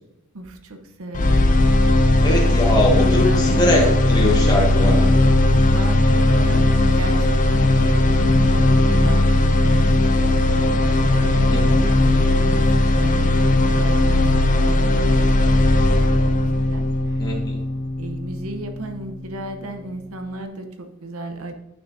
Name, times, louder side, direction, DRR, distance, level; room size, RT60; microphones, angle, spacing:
voice 1, 0.3-2.0 3.0-3.7 5.6-15.6 16.0-17.4 18.0-21.5, right 2 dB, 75° right, 6 dB, 0.8 m, -35 dB
sound 1, 1.1-19.2, left 1 dB, 35° left, 0.5 m, -17 dB
voice 2, 2.2-5.1 11.5-11.8 17.2-17.6, left 1 dB, 20° left, -2 dB, 1.5 m, -21 dB
9.3 x 6.1 x 2.7 m, 0.98 s
head